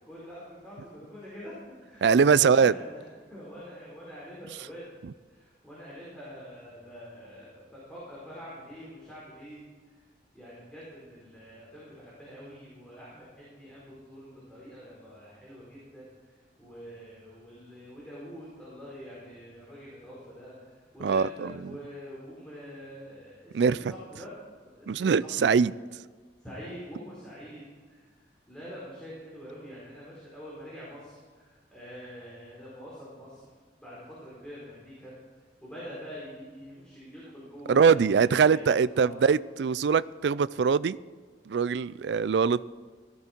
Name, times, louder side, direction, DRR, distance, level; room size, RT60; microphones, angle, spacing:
voice 1, 0.0-3.0 3.3-4.8 5.3-9.6 10.3-16.1 16.6-24.3 24.6-25.1 25.4-25.5 26.4-28.1 28.5-33.4 33.8-35.1 35.6-38.7 38.9-39.2, equal, 5° left, 4.6 m, -45 dB
voice 2, 2.0-2.7 21.0-21.7 23.5-23.8 24.9-25.7 37.7-41.0 41.5-42.6, right 6 dB, 75° right, 0.4 m, -22 dB
17.5 x 13.5 x 4.5 m
head